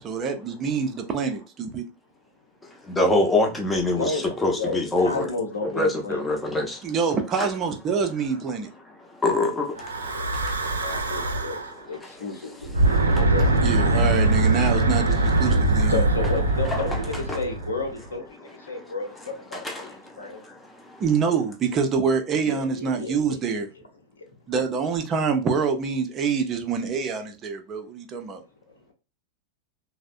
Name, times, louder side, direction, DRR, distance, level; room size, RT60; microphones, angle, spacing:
voice 1, 0.0-1.8 6.8-8.7 13.6-16.0 21.0-23.7 24.5-28.4, right 5 dB, 30° right, 0.5 m, -26 dB
voice 2, 2.6-5.3 5.6-6.9 7.4-7.5 8.8-11.3 11.7-13.2 16.6-17.0 17.3-17.4 18.7-18.8 19.5-21.0, left 2 dB, 10° left, 0.7 m, -27 dB
voice 3, 4.6-6.2 10.8-12.7 13.1-13.4 15.9-20.4 22.4-23.6, left 3 dB, 70° left, 0.7 m, -32 dB
Breathing / Wind, 9.8-11.7 12.6-18.0, right 2 dB, 75° right, 0.6 m, -22 dB
3.3 x 2.1 x 2.4 m
figure-of-eight pair, 90°, 0 cm